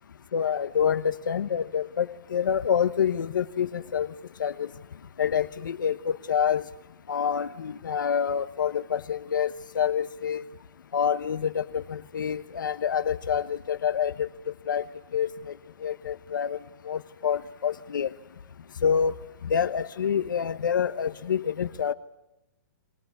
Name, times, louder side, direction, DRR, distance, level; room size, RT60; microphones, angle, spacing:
voice 1, 0.3-4.1 4.4-4.7 5.2-6.6 7.1-10.4 10.9-14.3 14.7-14.8 15.1-15.5 15.8-16.6 16.8-18.1 18.8-19.1 19.5-21.9, left 8 dB, 85° left, 10 dB, 1.1 m, -27 dB
22.5 x 19.5 x 9.5 m, 0.87 s
hypercardioid pair, 180°, 10 cm